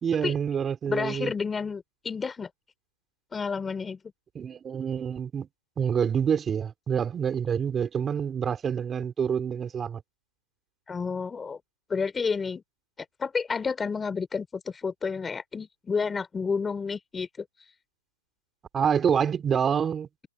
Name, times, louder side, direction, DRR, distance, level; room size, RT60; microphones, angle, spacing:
voice 1, 0.0-1.3 4.3-5.5 5.8-10.0 18.7-20.1, right 7 dB, 15° right, 3.8 m, -27 dB
voice 2, 0.9-2.5 3.3-4.0 10.9-11.6 11.9-12.6 13.2-17.4, left 5 dB, 10° left, 3.1 m, -30 dB
hypercardioid pair, 135°, 0 cm